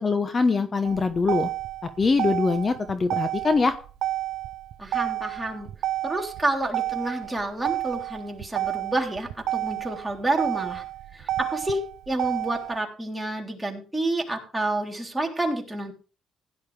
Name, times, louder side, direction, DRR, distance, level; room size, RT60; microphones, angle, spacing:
voice 1, 0.0-1.5 2.0-3.7, left 4 dB, 35° left, 9 dB, 1.2 m, -23 dB
Motor vehicle (road), 0.8-12.8, right 14 dB, 85° right, 0.5 m, -30 dB
voice 2, 4.8-5.7 6.0-10.8 11.1-11.8 12.1-15.9, right 2 dB, 10° right, 1 dB, 3.6 m, -29 dB
16.0 x 10.5 x 3.5 m, 0.37 s
cardioid pair, 90°, 0 cm